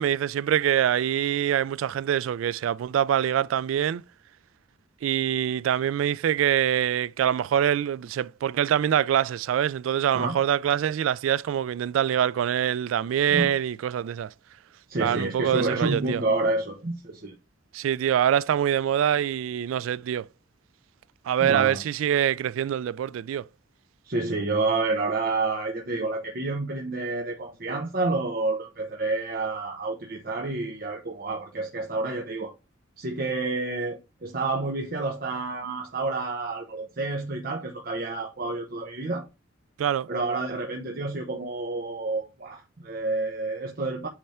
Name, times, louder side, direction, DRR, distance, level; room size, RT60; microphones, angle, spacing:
voice 1, 0.0-4.0 5.0-14.3 15.0-16.2 17.7-20.3 21.2-23.5 39.8-40.1, right 9 dB, 85° right, 0.3 m, -24 dB
voice 2, 14.9-17.3 21.4-21.8 24.0-32.5 33.0-39.2 40.1-44.1, right 3 dB, 50° right, 0.9 m, -29 dB
8.6 x 3.4 x 4.2 m
head